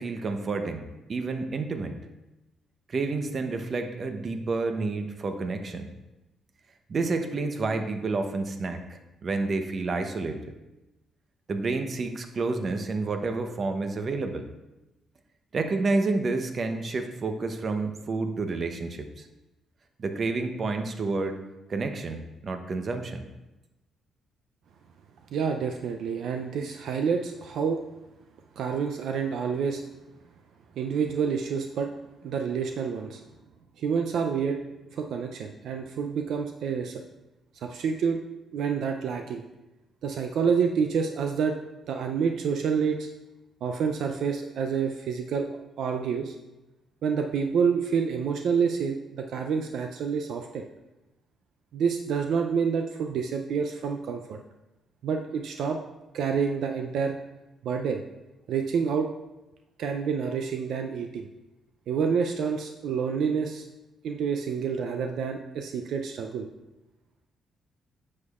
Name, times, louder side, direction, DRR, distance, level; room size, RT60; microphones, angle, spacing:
voice 1, 0.0-2.0 2.9-5.9 6.9-10.5 11.5-14.5 15.5-19.3 20.0-21.4 21.7-23.2, right 3 dB, 45° right, 7 dB, 0.8 m, -29 dB
voice 2, 25.3-27.8 28.6-29.8 30.8-31.9 32.2-33.2 33.8-34.6 34.9-37.0 37.6-38.2 38.5-39.4 40.0-41.6 41.9-43.1 43.6-45.5 45.8-46.4 47.0-50.6 51.7-54.4 55.0-55.8 56.1-57.2 57.6-58.0 58.5-59.1 59.8-61.3 61.9-63.6 64.0-66.5, right 6 dB, 75° right, 4 dB, 0.5 m, -28 dB
9.5 x 6.5 x 2.4 m, 1.0 s
cardioid pair, 90°, 0 cm